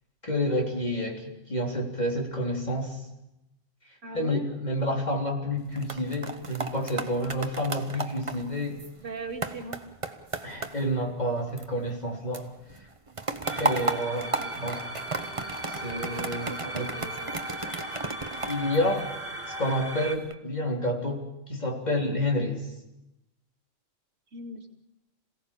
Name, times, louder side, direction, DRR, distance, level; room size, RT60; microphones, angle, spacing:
voice 1, 0.2-3.0 4.1-8.8 10.4-12.5 13.5-14.8 15.7-16.9 18.5-19.1 19.6-22.7, left 1 dB, 30° left, 0 dB, 3.7 m, -29 dB
voice 2, 4.0-4.5 9.0-9.8 14.2-14.5 16.5-17.4 24.3-24.7, right 3 dB, 65° right, 3 dB, 2.8 m, -40 dB
sound 1, 5.6-12.1 12.3-19.5 20.0-20.3, right 3 dB, 25° right, 1.2 m, -35 dB
sound 2, 13.4-20.2, right 1 dB, 45° right, 2.7 m, -37 dB
27.5 x 17.5 x 7.2 m, 0.90 s
omnidirectional pair, 1.4 m